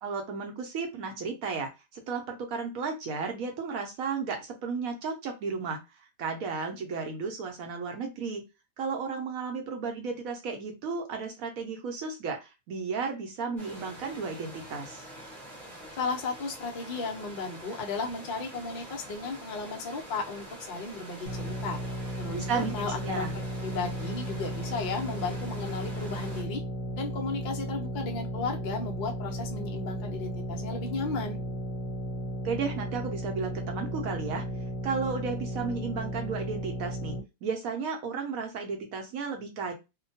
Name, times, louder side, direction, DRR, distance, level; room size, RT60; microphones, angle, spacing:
voice 1, 0.0-5.8 6.2-8.4 8.8-15.0 22.3-22.7 23.0-23.4 32.4-34.4 34.8-39.7, right 5 dB, 65° right, 3 dB, 1.0 m, -33 dB
sound 1, 13.6-26.4, right 1 dB, ahead, 0.9 m, -46 dB
voice 2, 15.9-21.8 22.2-23.3 23.6-26.6 27.0-31.4, left 4 dB, 70° left, 1 dB, 0.4 m, -34 dB
sound 2, 21.2-37.2, right 1 dB, 50° left, 1.0 m, -35 dB
2.8 x 2.2 x 2.7 m, 0.25 s
omnidirectional pair, 1.8 m